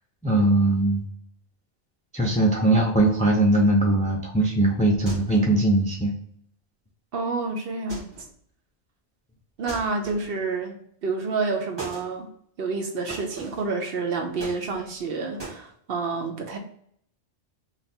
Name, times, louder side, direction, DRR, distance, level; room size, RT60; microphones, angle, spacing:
voice 1, 0.2-1.0 2.1-6.1, right 1 dB, 10° left, -1 dB, 0.3 m, -20 dB
sound 1, 5.1-5.6 7.9-8.4 9.7-10.5 11.8-12.1 13.1-13.7 14.4-15.0 15.4-15.6, right 3 dB, 20° right, 1.4 m, -38 dB
voice 2, 7.1-8.2 9.6-10.8 11.0-12.3 12.6-16.6, right 4 dB, 60° right, 3 dB, 0.7 m, -29 dB
3.3 x 2.4 x 4.2 m, 0.66 s
omnidirectional pair, 1.2 m